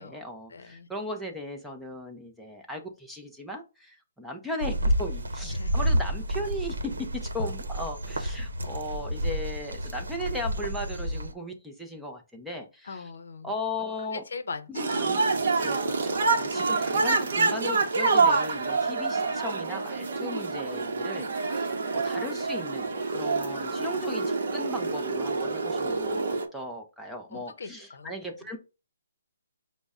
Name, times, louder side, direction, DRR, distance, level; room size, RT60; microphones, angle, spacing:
voice 1, 0.0-13.1 13.4-14.2 14.7-15.2 15.6-28.6, left 1 dB, ahead, 0.5 m, -37 dB
voice 2, 0.5-0.9 5.4-5.8 12.9-13.5 14.3-14.9 15.2-15.4 27.3-28.1, left 3 dB, 60° left, 0.7 m, -40 dB
sound 1, 4.6-11.3, right 1 dB, 85° right, 0.8 m, -30 dB
sound 2, 14.7-26.5, right 4 dB, 45° right, 0.8 m, -27 dB
5.2 x 2.1 x 3.5 m
hypercardioid pair, 170°, 0 cm